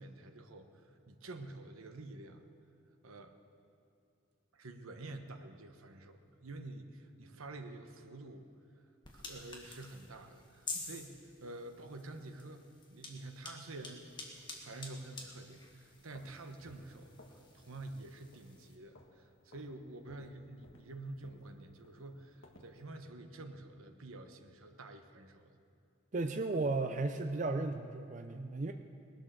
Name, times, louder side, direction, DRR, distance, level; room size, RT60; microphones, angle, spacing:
voice 1, 0.0-2.4 3.0-3.3 4.5-8.4 9.1-14.2 14.5-25.6, right 2 dB, 85° right, 6 dB, 1.1 m, -49 dB
sound 1, 9.0-18.8, left 3 dB, 20° left, 1.7 m, -49 dB
sound 2, 15.9-17.5 17.7-18.0 18.3-19.2 19.5-19.7 20.1-22.8, left 1 dB, 70° left, 1.5 m, -59 dB
voice 2, 26.1-28.7, right 3 dB, 35° right, 6 dB, 0.5 m, -34 dB
19.0 x 11.0 x 6.7 m, 2.5 s
head